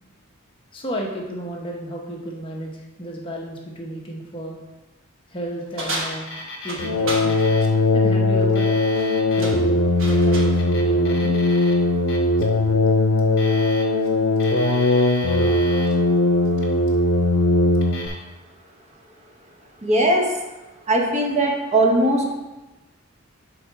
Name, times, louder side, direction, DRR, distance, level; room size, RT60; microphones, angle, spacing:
voice 1, 0.7-2.7 3.0-4.6 5.3-6.3 6.6-7.4 7.9-8.7 9.4-9.8 10.0-11.4, right 1 dB, 25° left, -1 dB, 0.9 m, -32 dB
sound 1, 5.8-7.3 8.8-9.1 9.4-10.6, right 1 dB, 75° right, 1.3 m, -31 dB
Alarm, 5.9-6.9 7.2-7.8 8.4-9.5 10.3-11.7 12.1-12.4 13.2-14.1 14.4-16.0 16.5-17.0 17.7-18.1, left 1 dB, 50° left, 1.3 m, -36 dB
sound 2, 6.8-18.1, left 2 dB, 85° left, 0.6 m, -19 dB
voice 2, 19.8-20.4 20.9-22.3, right 1 dB, 35° right, 1 dB, 0.9 m, -19 dB
5.0 x 4.4 x 5.9 m, 1.1 s
head